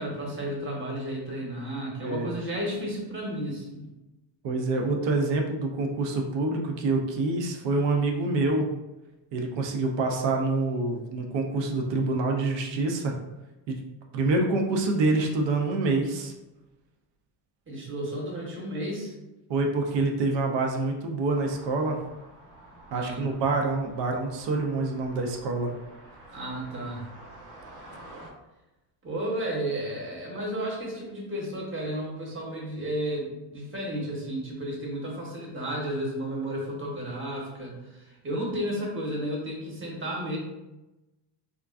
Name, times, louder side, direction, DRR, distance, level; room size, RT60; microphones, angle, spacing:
voice 1, 0.0-3.9 17.7-19.1 22.9-23.2 26.3-27.1 29.0-40.4, right 1 dB, 25° right, -2 dB, 1.1 m, -33 dB
voice 2, 4.4-8.7 9.3-13.2 13.7-13.8 14.1-16.3 19.5-22.0 22.9-25.7, right 3 dB, 60° right, 2 dB, 0.6 m, -26 dB
sound 1, 21.3-28.3, right 1 dB, 85° right, 1.1 m, -49 dB
3.6 x 2.4 x 2.4 m, 1.0 s
cardioid pair, 115°, 50 cm